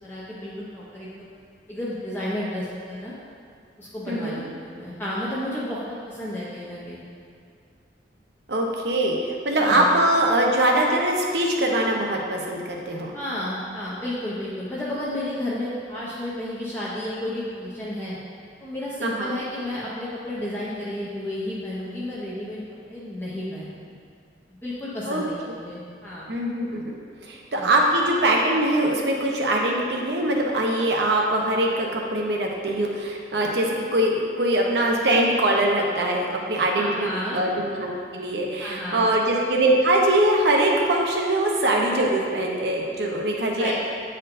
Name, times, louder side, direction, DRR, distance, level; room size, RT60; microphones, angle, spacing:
voice 1, 0.0-1.3 1.7-3.1 3.8-7.0 9.6-9.9 13.1-18.2 18.6-22.6 22.9-23.9 24.5-26.4 27.5-27.8 36.7-37.4 38.6-39.1 43.6-43.7, left 1 dB, 15° left, -8 dB, 0.7 m, -32 dB
voice 2, 4.1-4.4 8.5-13.1 19.0-19.4 25.1-25.2 26.3-43.7, right 1 dB, 70° right, 0 dB, 0.8 m, -22 dB
8.7 x 4.4 x 2.5 m, 2.2 s
head